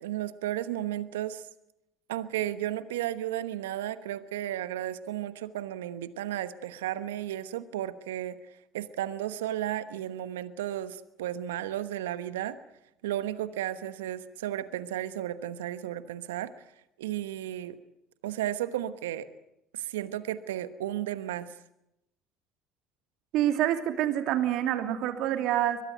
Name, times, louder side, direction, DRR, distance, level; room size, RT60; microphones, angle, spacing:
voice 1, 0.0-1.4 2.1-8.4 8.7-12.6 13.0-16.5 17.0-17.8 18.2-19.3 19.7-21.5, right 12 dB, 80° right, 13 dB, 1.1 m, -33 dB
voice 2, 23.3-25.8, right 12 dB, 65° right, 7 dB, 2.9 m, -27 dB
23.0 x 21.0 x 9.3 m, 0.85 s
hypercardioid pair, 65°, 0 cm